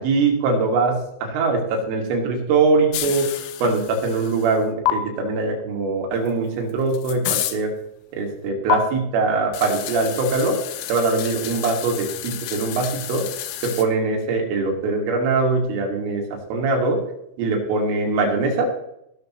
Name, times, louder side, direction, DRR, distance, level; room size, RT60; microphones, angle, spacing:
voice 1, 0.0-7.7 8.1-10.6 10.9-13.3 13.6-17.0 17.4-18.7, right 3 dB, 75° right, 1 dB, 5.0 m, -22 dB
sound 1, 2.9-4.6 4.9-5.0 6.3-6.4 6.7-7.6 8.7-8.8 9.5-13.9, left 14 dB, 75° left, 3.0 m, -29 dB
17.0 x 12.0 x 3.2 m, 0.79 s
omnidirectional pair, 5.9 m